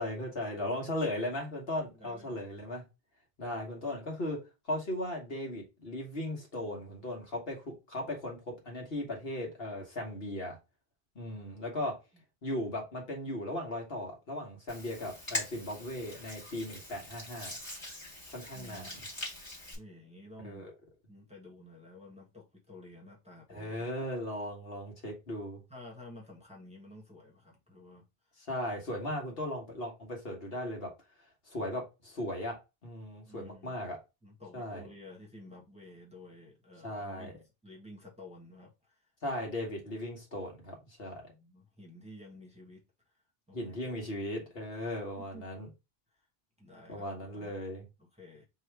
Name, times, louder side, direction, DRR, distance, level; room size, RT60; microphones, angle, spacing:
voice 1, 0.0-2.8 3.4-4.4 4.7-10.6 11.1-11.9 12.4-17.6 18.3-18.9 20.4-20.7 23.5-25.6 28.5-30.9 31.5-32.6 32.8-34.0 34.5-34.8 36.8-37.3 39.2-41.2 43.5-45.7 46.9-47.8, left 1 dB, 65° left, 1.6 m, -37 dB
voice 2, 1.9-2.4 18.5-19.0 19.7-20.7 21.1-23.8 25.7-28.0 28.3-28.4 33.2-33.8 34.2-39.1 41.1-42.8 43.5-43.8 45.2-45.4 46.6-47.1 47.3-47.5 48.0-48.5, left 1 dB, 5° right, 1.4 m, -52 dB
Hands, 14.7-19.7, left 1 dB, 25° left, 1.8 m, -42 dB
4.7 x 2.9 x 3.3 m
omnidirectional pair, 1.1 m